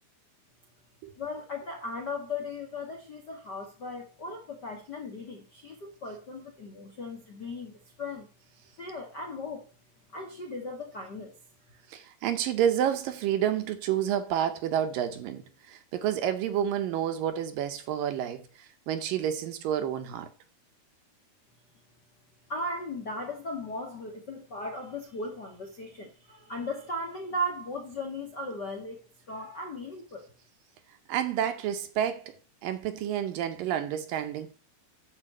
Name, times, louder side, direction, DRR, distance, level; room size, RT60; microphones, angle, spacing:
voice 1, 1.2-8.3 8.8-9.7 10.1-11.4 22.5-30.3, left 1 dB, 60° left, 1.0 m, -37 dB
voice 2, 11.9-20.3 31.1-32.4 32.6-34.5, right 10 dB, 70° right, 2.3 m, -29 dB
10.5 x 4.7 x 7.8 m
omnidirectional pair, 4.7 m